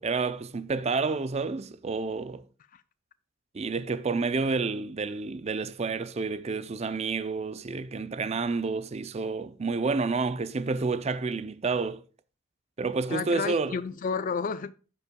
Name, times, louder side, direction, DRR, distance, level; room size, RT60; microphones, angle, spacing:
voice 1, 0.0-2.4 3.5-12.0 12.8-13.8, right 4 dB, 30° right, 0.4 m, -29 dB
voice 2, 13.1-14.7, left 5 dB, 40° left, 0.4 m, -31 dB
15.5 x 5.4 x 2.3 m
head